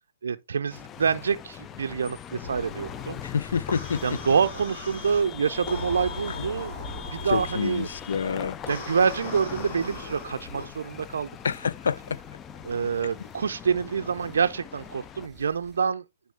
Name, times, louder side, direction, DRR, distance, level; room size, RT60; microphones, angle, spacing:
voice 1, 0.2-3.2 4.0-6.7 7.1-7.9 8.7-11.3 12.6-16.0, right 6 dB, 70° right, 0.4 m, -26 dB
sound 1, 0.7-15.3, left 9 dB, 20° left, 0.4 m, -41 dB
sound 2, 2.4-10.7, left 2 dB, 50° left, 5.0 m, -39 dB
voice 2, 3.2-4.0 7.3-8.6 11.4-12.2, left 6 dB, 70° left, 0.6 m, -27 dB
sound 3, 3.4-15.8, equal, ahead, 3.7 m, -53 dB
9.0 x 4.8 x 3.4 m
hypercardioid pair, 130°, 0 cm